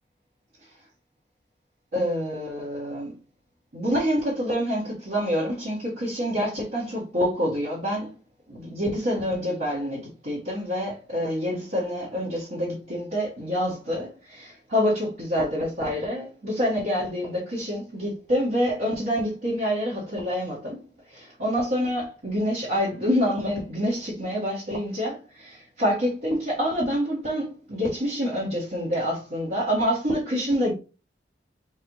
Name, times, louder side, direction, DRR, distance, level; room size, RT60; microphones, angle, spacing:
voice 1, 1.9-3.1 3.7-8.1 8.5-20.8 21.1-30.7, equal, 60° right, 1.8 m, -27 dB
4.6 x 3.4 x 3.1 m
head